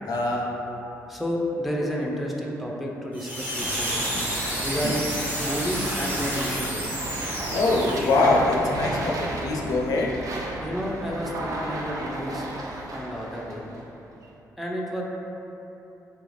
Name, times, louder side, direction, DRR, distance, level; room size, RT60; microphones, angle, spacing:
voice 1, 0.1-0.6 4.5-4.9 7.5-10.2, left 2 dB, 70° left, -1 dB, 0.4 m, -24 dB
voice 2, 1.1-4.0 4.6-5.1 5.4-7.1 10.6-12.4 12.9-13.7 14.6-15.0, equal, ahead, -2 dB, 0.4 m, -31 dB
sound 1, 3.1-8.3, equal, 30° right, 1.0 m, -30 dB
sound 2, 3.6-14.2, right 2 dB, 60° right, 0.4 m, -34 dB
3.4 x 2.3 x 3.1 m, 3.0 s
cardioid pair, 75°, 7 cm